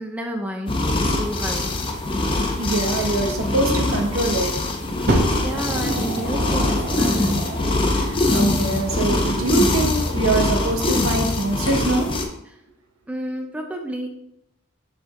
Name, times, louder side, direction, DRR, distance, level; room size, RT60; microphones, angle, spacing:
voice 1, 0.0-1.8 5.4-7.5 13.1-14.2, right 1 dB, 5° right, 2 dB, 0.5 m, -31 dB
sound 1, 0.7-12.2, left 2 dB, 25° left, 0.7 m, -23 dB
voice 2, 2.6-4.5 7.8-12.2, right 2 dB, 80° right, 3 dB, 1.1 m, -23 dB
Fire, 5.1-7.9 8.7-8.8, right 1 dB, 50° right, 1.1 m, -26 dB
5.1 x 5.0 x 3.7 m, 0.78 s
head